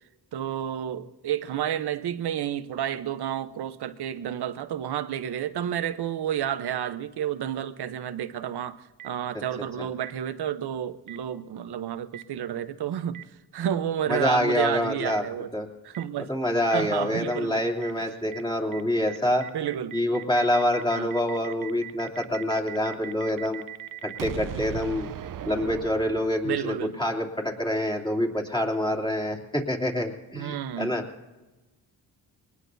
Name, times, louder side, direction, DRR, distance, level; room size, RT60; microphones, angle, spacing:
voice 1, 0.3-13.3 13.5-15.5 15.8-16.3 16.7-17.6 19.5-20.0 20.9-21.1 26.4-27.0 30.3-31.0, right 10 dB, 70° right, 1.0 m, -30 dB
Boom, 9.0-9.1 10.0-10.1 11.1-11.2 12.1-12.2 13.1-13.2 14.1-14.2 15.1-15.2 15.9-16.0 16.7-16.8 17.3-17.4 17.8-17.9 18.3-18.4 18.7-18.8 19.1-26.6, right 11 dB, 55° right, 0.7 m, -38 dB
voice 2, 14.1-15.2 15.5-15.7 16.3-19.4 19.9-23.6 24.0-25.1 25.4-31.0, left 1 dB, 10° left, 3.0 m, -26 dB
23.0 x 19.5 x 2.7 m
cardioid pair, 65°, 40 cm